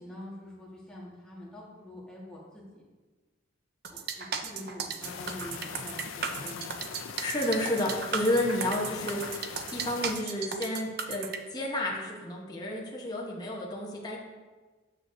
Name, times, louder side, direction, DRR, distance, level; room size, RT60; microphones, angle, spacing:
voice 1, 0.0-2.8 3.9-6.7, left 1 dB, 5° left, -6 dB, 1.5 m, -45 dB
sound 1, 3.8-11.4, right 6 dB, 50° right, 0.5 m, -35 dB
sound 2, 5.0-10.2, left 6 dB, 75° left, 0.5 m, -41 dB
voice 2, 7.2-9.4 9.7-14.2, left 1 dB, 20° left, -3 dB, 0.9 m, -31 dB
8.8 x 6.4 x 2.6 m, 1.3 s
head